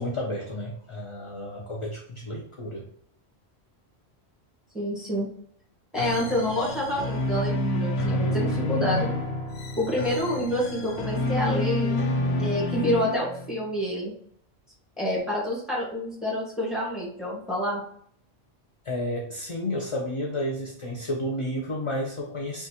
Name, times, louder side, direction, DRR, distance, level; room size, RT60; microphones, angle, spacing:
voice 1, 0.0-2.8 18.8-22.7, left 1 dB, 35° left, -1 dB, 0.6 m, -31 dB
voice 2, 4.7-5.3 5.9-9.1 9.8-12.0 12.4-14.1 15.0-17.8, equal, ahead, -5 dB, 1.6 m, -28 dB
sound 1, 6.0-13.6, left 2 dB, 75° left, 0.9 m, -28 dB
5.5 x 2.4 x 2.9 m, 0.62 s
omnidirectional pair, 1.1 m